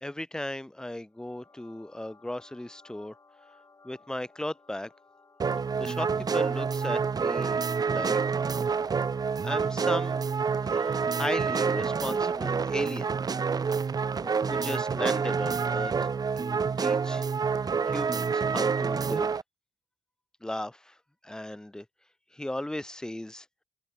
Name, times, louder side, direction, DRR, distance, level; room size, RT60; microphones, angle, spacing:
voice 1, 0.0-3.1 3.8-4.9 5.7-8.2 9.4-10.2 10.6-13.1 14.2-16.1 16.4-17.2 17.8-19.4 20.4-21.0 21.2-21.9 22.3-23.5, left 1 dB, 5° left, 0.9 m, -36 dB
sound 1, 1.1-9.9, left 3 dB, 25° left, 6.8 m, -59 dB
sound 2, 5.4-19.4, right 5 dB, 30° right, 0.6 m, -28 dB
open air
cardioid pair, 125°, 13 cm